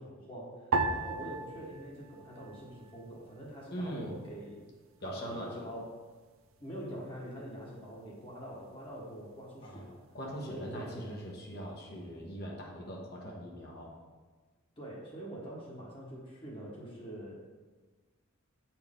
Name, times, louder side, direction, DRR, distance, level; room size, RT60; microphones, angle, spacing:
voice 1, 0.0-4.6 5.0-5.9 6.6-10.0 10.5-11.0 14.8-17.3, equal, 25° left, -5 dB, 1.3 m, -44 dB
sound 1, 0.7-3.2 3.5-4.4 5.0-5.4, right 3 dB, 70° right, 0.5 m, -36 dB
voice 2, 3.7-4.1 5.0-5.6 9.6-14.0, equal, 50° left, -2 dB, 1.2 m, -41 dB
8.0 x 4.4 x 3.7 m, 1.4 s
head